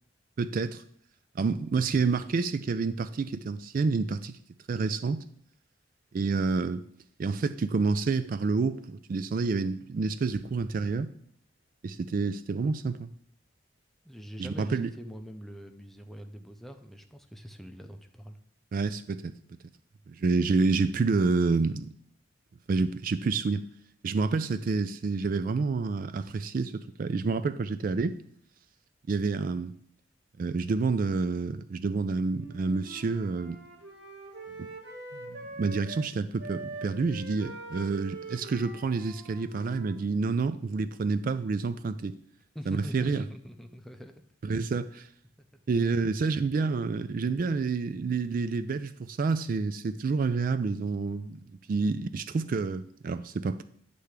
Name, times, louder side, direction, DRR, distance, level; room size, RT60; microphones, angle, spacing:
voice 1, 0.4-0.8 1.4-4.3 4.7-5.2 6.1-6.8 7.2-11.1 11.8-13.1 14.4-14.9 18.7-19.3 20.1-21.9 22.7-23.6 24.0-28.2 29.1-29.7 30.4-33.6 34.6-34.7 35.3-42.2 42.7-43.2 44.4-45.1 45.7-51.4 51.7-53.6, right 4 dB, 45° right, 12 dB, 0.3 m, -28 dB
voice 2, 14.0-18.4 42.5-44.1 44.4-44.6 45.4-45.6, equal, ahead, 5 dB, 0.6 m, -44 dB
Wind instrument woodwind instrument, 32.3-36.1 36.4-40.5, right 2 dB, 70° right, 2.4 m, -44 dB
10.0 x 3.4 x 6.5 m, 0.65 s
head